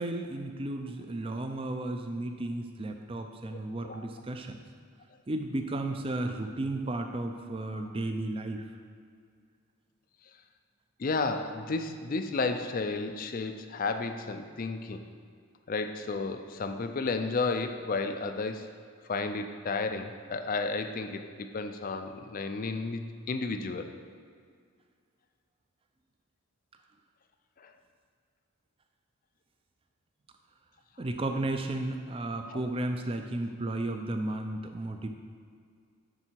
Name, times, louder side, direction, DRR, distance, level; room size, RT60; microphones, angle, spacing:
voice 1, 0.0-4.6 5.3-8.7 31.0-35.1, right 2 dB, 25° right, 5 dB, 0.4 m, -33 dB
voice 2, 11.0-15.0 15.7-18.7 19.1-23.9 27.6-27.7 32.5-32.6, left 3 dB, 40° left, 7 dB, 0.4 m, -32 dB
9.9 x 3.8 x 4.6 m, 2.2 s
head